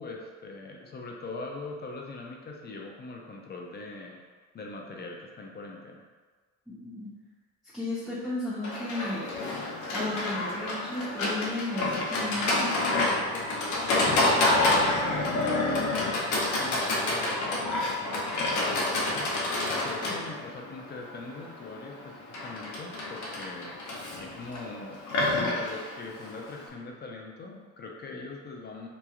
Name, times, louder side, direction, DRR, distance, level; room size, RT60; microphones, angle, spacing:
voice 1, 0.0-4.2 4.5-6.1 14.1-19.3 19.7-23.7 24.2-25.0 25.3-28.9, left 3 dB, 35° left, 0 dB, 0.5 m, -41 dB
voice 2, 6.7-7.1 7.7-9.3 9.9-13.0 20.0-20.1, left 2 dB, ahead, -13 dB, 0.8 m, -34 dB
Livestock farm animals working animals, 8.6-26.7, left 2 dB, 75° left, 0.6 m, -28 dB
3.0 x 2.3 x 2.3 m, 1.5 s
cardioid pair, 90°, 30 cm